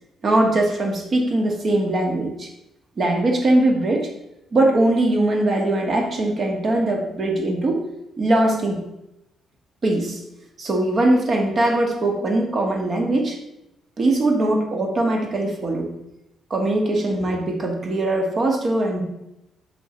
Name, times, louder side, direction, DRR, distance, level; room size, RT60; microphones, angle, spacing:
voice 1, 0.2-2.5 3.0-4.1 4.5-7.8 8.2-8.8 9.8-10.2 10.6-13.4 14.0-15.9 16.5-19.0, right 1 dB, 45° right, 2 dB, 1.6 m, -21 dB
6.9 x 4.6 x 4.5 m, 0.88 s
cardioid pair, 90°, 0 cm